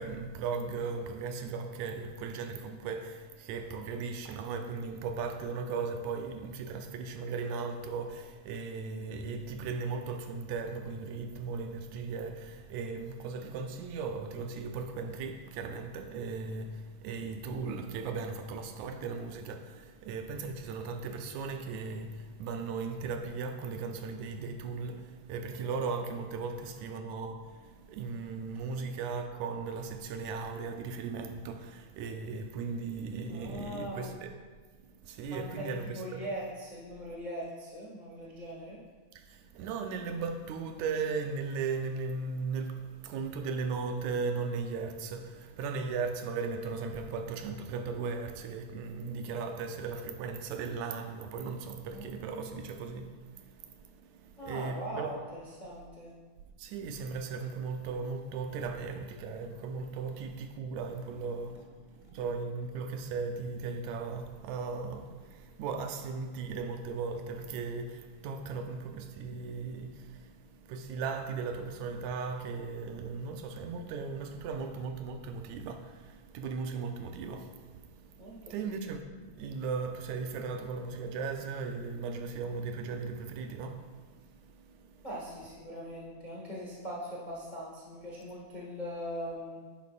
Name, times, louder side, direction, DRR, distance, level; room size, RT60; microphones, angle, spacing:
voice 1, 0.0-34.3 34.7-36.2 38.2-38.3 39.2-55.1 56.6-85.1, right 4 dB, 80° right, 2.1 m, -37 dB
voice 2, 33.3-34.2 35.3-38.8 51.9-52.5 54.4-56.1 78.2-78.3 85.0-89.6, equal, 25° left, 0.9 m, -41 dB
10.5 x 10.0 x 2.5 m
omnidirectional pair, 3.4 m